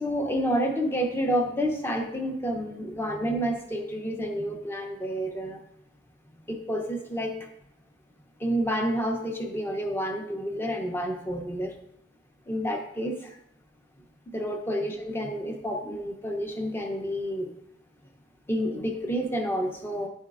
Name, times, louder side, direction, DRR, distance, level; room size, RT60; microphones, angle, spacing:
voice 1, 0.0-5.6 6.5-7.3 8.4-11.7 12.5-13.2 14.3-17.5 18.5-20.1, equal, 15° left, 3 dB, 0.7 m, -29 dB
10.5 x 4.3 x 2.5 m, 0.78 s
head